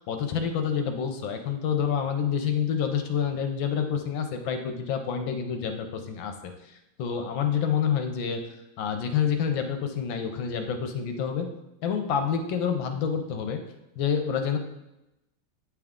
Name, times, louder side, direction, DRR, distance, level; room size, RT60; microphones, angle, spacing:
voice 1, 0.0-6.3 7.0-8.4 8.8-11.5 11.8-13.6 14.0-14.6, left 7 dB, 75° left, 5 dB, 1.3 m, -28 dB
9.1 x 3.5 x 3.6 m, 0.93 s
omnidirectional pair, 2.3 m